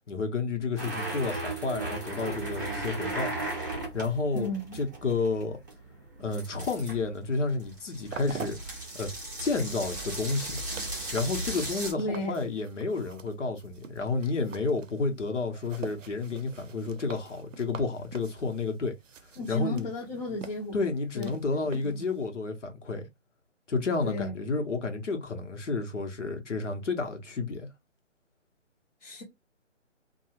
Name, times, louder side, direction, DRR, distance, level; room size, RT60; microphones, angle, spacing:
voice 1, 0.0-3.3 3.9-4.5 4.7-5.6 6.2-8.6 8.9-9.1 9.4-10.6 11.1-18.9 19.5-19.9 20.7-23.1 23.7-27.7, left 3 dB, 70° left, 1.1 m, -30 dB
sound 1, 0.8-11.9, right 2 dB, 15° right, 0.6 m, -37 dB
voice 2, 4.3-4.8 12.0-12.4 19.4-20.8 21.1-22.0 24.0-24.3 29.0-29.2, left 1 dB, 35° left, 0.9 m, -34 dB
sound 2, 7.6-22.3, right 6 dB, 80° right, 0.6 m, -46 dB
2.6 x 2.3 x 3.0 m
hypercardioid pair, 155°, 38 cm